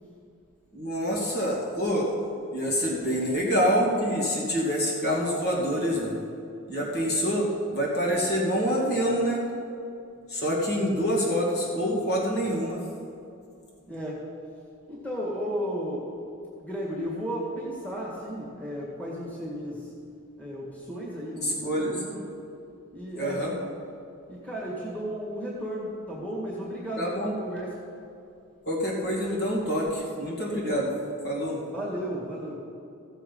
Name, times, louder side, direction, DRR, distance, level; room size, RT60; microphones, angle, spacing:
voice 1, 0.7-2.1 2.5-6.1 6.7-9.4 10.3-12.8 21.4-22.0 23.2-23.6 27.0-27.3 28.7-30.9 31.2-31.6, equal, 50° left, -4 dB, 2.4 m, -26 dB
voice 2, 13.9-14.3 14.9-16.1 16.6-19.9 20.4-21.7 22.0-22.2 22.9-23.5 24.3-27.8 31.7-32.6, equal, 5° left, -5 dB, 1.9 m, -34 dB
15.0 x 7.2 x 5.5 m, 2.5 s
head